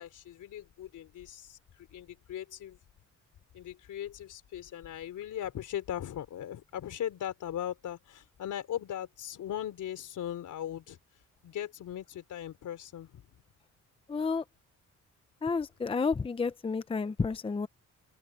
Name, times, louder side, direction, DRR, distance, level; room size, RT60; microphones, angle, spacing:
voice 1, 0.0-2.8 3.5-11.0 11.4-13.3, left 11 dB, 75° left, 3.9 m, -39 dB
voice 2, 14.1-14.4 15.4-17.7, left 4 dB, 20° left, 0.7 m, -31 dB
cardioid pair, 140°, 31 cm